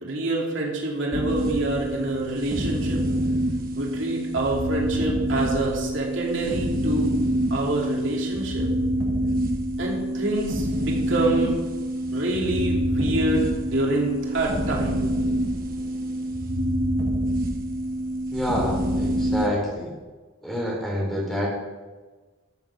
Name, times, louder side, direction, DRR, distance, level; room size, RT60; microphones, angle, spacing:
voice 1, 0.0-3.0 3.8-7.1 7.5-8.7 9.8-11.5 12.1-15.0, right 2 dB, 75° right, -2 dB, 2.8 m, -26 dB
sound 1, 1.1-19.5, equal, 45° right, 1.3 m, -26 dB
voice 2, 18.3-19.9 20.4-21.5, equal, ahead, -3 dB, 3.6 m, -27 dB
14.0 x 7.2 x 6.0 m, 1.3 s
head